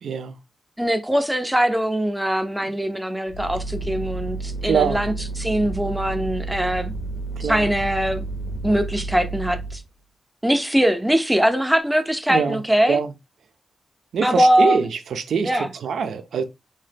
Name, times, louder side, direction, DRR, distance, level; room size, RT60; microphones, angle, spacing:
voice 1, 0.0-0.4 2.6-2.7 4.6-5.0 7.4-7.7 12.3-12.6 12.9-13.1 14.1-16.4, right 6 dB, 90° right, 0.4 m, -24 dB
voice 2, 0.8-6.9 7.4-8.2 8.6-9.8 10.4-13.0 14.2-14.9 15.4-15.7, equal, 5° right, 0.4 m, -21 dB
sound 1, 3.3-9.8, right 3 dB, 70° left, 0.6 m, -31 dB
2.7 x 2.1 x 3.3 m
wide cardioid pair, 100°, 0 cm